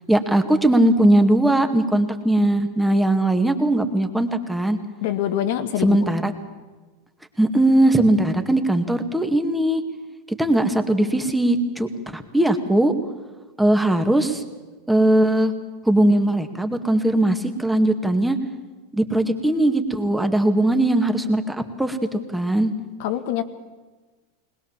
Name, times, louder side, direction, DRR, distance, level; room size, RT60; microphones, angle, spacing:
voice 1, 0.1-4.8 5.8-6.3 7.4-9.8 10.4-12.9 13.6-14.4 14.9-15.5 15.9-18.4 18.9-22.7, right 1 dB, 5° right, 6 dB, 2.1 m, -19 dB
voice 2, 5.0-6.0 23.0-23.4, left 11 dB, 65° left, 10 dB, 1.8 m, -24 dB
21.0 x 20.0 x 7.5 m, 1.3 s
hypercardioid pair, 100°, 0 cm